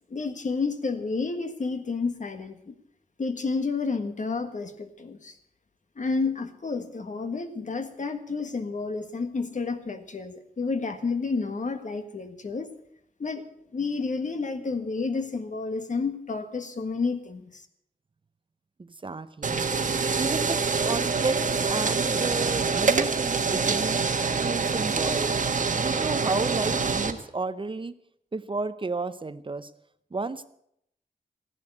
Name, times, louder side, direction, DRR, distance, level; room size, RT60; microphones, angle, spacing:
voice 1, 0.1-2.7 3.2-5.4 5.9-12.7 13.2-13.4 13.7-17.7, left 4 dB, 55° left, 8 dB, 1.6 m, -30 dB
voice 2, 18.8-19.6 20.2-24.0 24.4-25.3 25.8-27.9 28.3-29.7 30.1-30.5, right 3 dB, 35° right, 13 dB, 0.7 m, -32 dB
sound 1, 19.4-27.1, right 4 dB, 55° right, 1.4 m, -25 dB
15.5 x 11.0 x 7.9 m, 0.72 s
wide cardioid pair, 125°, 16 cm